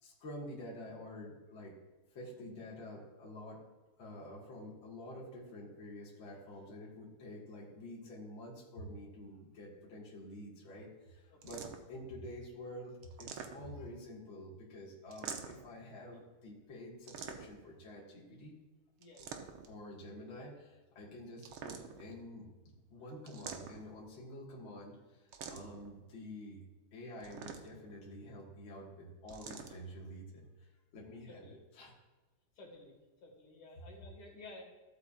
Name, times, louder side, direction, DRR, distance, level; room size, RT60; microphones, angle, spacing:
voice 1, 0.0-1.8 2.2-3.6 4.0-11.6 11.9-18.5 19.7-26.6 26.9-30.7 30.9-31.9, left 1 dB, 65° left, -4 dB, 2.5 m, -48 dB
voice 2, 2.4-2.7 11.3-11.6 16.1-16.2 19.0-19.6 31.3-31.6 32.5-32.9 33.2-34.6, left 2 dB, 80° left, -1 dB, 2.7 m, -54 dB
sound 1, 11.4-12.0 13.0-13.9 15.1-15.7 17.1-17.7 19.0-19.8 21.4-22.2 23.3-24.0 25.3-25.9 27.2-27.9 29.3-29.8, right 7 dB, 80° right, 1.7 m, -46 dB
15.5 x 8.0 x 2.4 m, 1.2 s
omnidirectional pair, 2.3 m